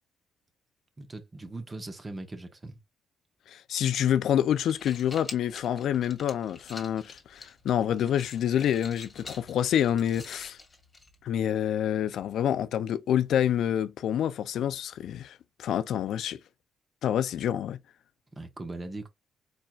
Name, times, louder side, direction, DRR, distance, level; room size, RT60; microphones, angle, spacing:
voice 1, 1.0-2.8 18.3-19.1, right 2 dB, 25° right, 1.4 m, -40 dB
voice 2, 3.5-10.6 11.2-16.4 17.0-17.8, left 10 dB, 75° left, 0.4 m, -27 dB
sound 1, 4.4-11.4, left 3 dB, 30° left, 1.7 m, -47 dB
4.4 x 4.4 x 2.4 m
cardioid pair, 90°, 0 cm